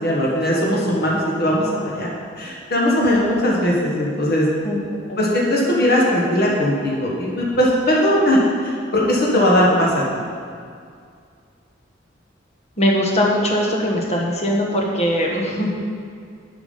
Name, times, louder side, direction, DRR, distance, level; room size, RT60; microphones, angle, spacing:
voice 1, 0.0-4.5 5.2-9.9, equal, 55° left, -4 dB, 1.5 m, -19 dB
voice 2, 12.8-15.7, equal, 35° left, -1 dB, 1.4 m, -20 dB
8.7 x 6.0 x 5.5 m, 2.2 s
head